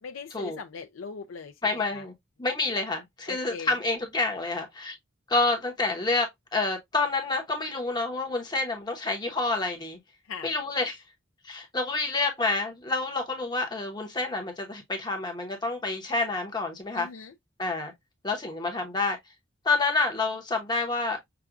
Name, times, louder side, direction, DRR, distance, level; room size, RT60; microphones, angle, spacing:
voice 1, 0.0-2.0 3.3-3.8 10.3-10.5 16.9-17.3, left 5 dB, 80° left, 0.4 m, -40 dB
voice 2, 1.6-2.1 2.4-4.9 5.3-10.0 10.4-11.0 11.4-17.1 17.6-17.9 18.2-19.2 19.6-21.2, left 3 dB, 20° left, 0.9 m, -28 dB
5.8 x 2.3 x 2.4 m
head